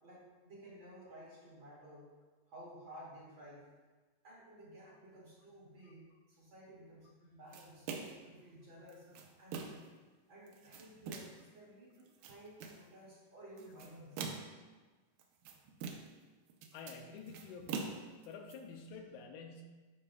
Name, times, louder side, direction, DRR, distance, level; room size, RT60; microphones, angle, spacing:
voice 1, 0.0-2.1 2.5-3.6 4.2-9.8 10.3-11.3 11.5-14.3, equal, 40° right, -8 dB, 2.8 m, -54 dB
sound 1, 7.5-8.3 8.9-9.9 10.5-11.4 12.0-12.9 13.6-14.6 15.2-16.2 16.5-18.5, right 5 dB, 90° right, 2.3 m, -44 dB
voice 2, 16.7-18.0 18.2-19.7, left 5 dB, 80° left, 3 dB, 2.0 m, -49 dB
12.0 x 4.7 x 2.3 m, 1.3 s
omnidirectional pair, 3.7 m